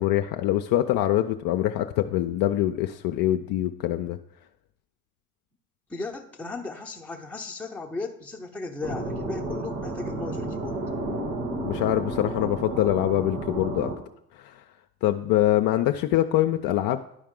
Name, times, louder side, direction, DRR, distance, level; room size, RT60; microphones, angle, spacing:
voice 1, 0.0-4.2 11.6-13.9 14.3-14.6 15.0-17.1, left 13 dB, 55° left, 6 dB, 0.5 m, -24 dB
voice 2, 5.9-10.8, left 3 dB, 5° left, 2 dB, 0.7 m, -36 dB
sound 1, 8.8-14.0, right 2 dB, 90° right, 1.4 m, -32 dB
11.5 x 4.6 x 3.7 m, 0.73 s
hypercardioid pair, 65°, 43 cm